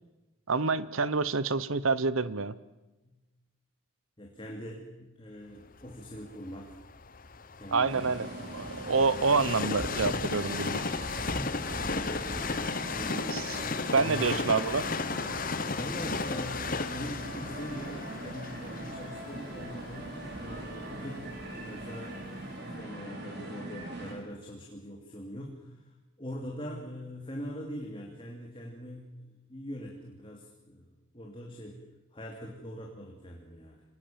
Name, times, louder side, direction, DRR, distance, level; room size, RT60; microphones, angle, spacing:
voice 1, 0.5-2.5 7.7-10.9 13.3-13.6 13.9-14.9, right 4 dB, 75° right, 16 dB, 0.9 m, -27 dB
voice 2, 4.2-6.8 7.6-8.1 10.8-11.1 11.5-14.4 15.6-20.1 20.4-25.9 26.2-31.8 32.1-33.8, equal, 25° left, 0 dB, 2.9 m, -42 dB
Train, 5.8-21.7 22.3-22.4, left 4 dB, 40° left, 1.1 m, -35 dB
sound 1, 7.9-24.1, right 1 dB, 50° right, 5.8 m, -41 dB
26.5 x 19.0 x 7.6 m, 1.1 s
head